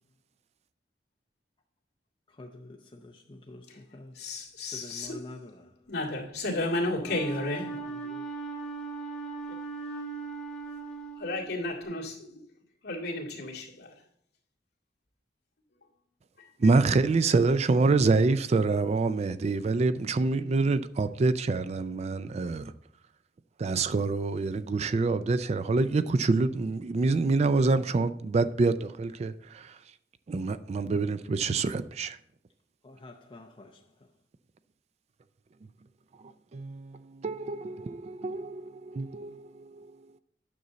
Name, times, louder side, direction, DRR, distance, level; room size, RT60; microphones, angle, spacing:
voice 1, 2.3-4.2 4.6-5.9 7.0-7.3 7.7-8.3 32.8-34.1, left 2 dB, 30° left, 0.6 m, -48 dB
voice 2, 4.1-5.2 5.9-7.8 9.5-9.6 11.2-12.4 12.8-13.9 16.6-17.0, left 2 dB, 60° left, 2.1 m, -33 dB
Wind instrument woodwind instrument, 7.0-11.8, right 4 dB, 5° left, 1.6 m, -38 dB
voice 3, 16.6-22.7 23.6-29.6 30.3-32.2 36.5-37.0 37.2-39.5 39.8-39.9, right 3 dB, 35° right, 0.3 m, -26 dB
9.4 x 6.8 x 4.0 m
head